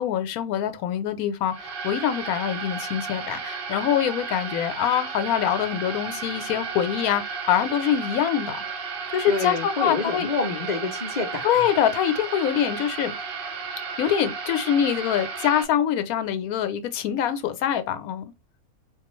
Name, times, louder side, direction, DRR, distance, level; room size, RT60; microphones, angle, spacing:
voice 1, 0.0-8.6 9.1-10.3 11.4-13.1 14.0-18.3, left 9 dB, 75° left, 1.0 m, -24 dB
sound 1, 1.5-15.6, right 5 dB, 80° right, 0.5 m, -33 dB
voice 2, 9.3-11.7, left 4 dB, 55° left, 0.5 m, -28 dB
4.1 x 2.3 x 3.0 m
omnidirectional pair, 1.6 m